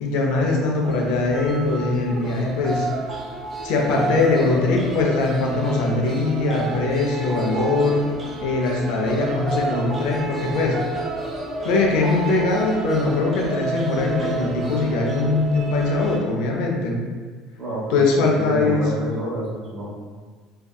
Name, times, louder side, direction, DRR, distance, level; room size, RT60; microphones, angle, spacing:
voice 1, 0.0-2.9 3.6-8.1 8.4-10.8 11.6-17.0 17.9-18.8, left 3 dB, 75° left, 0 dB, 0.5 m, -21 dB
sound 1, 0.8-16.2, right 3 dB, 30° right, 0.4 m, -30 dB
voice 2, 17.6-20.0, right 1 dB, 55° right, -7 dB, 1.1 m, -29 dB
2.6 x 2.2 x 2.3 m, 1.5 s
supercardioid pair, 115°, 0 cm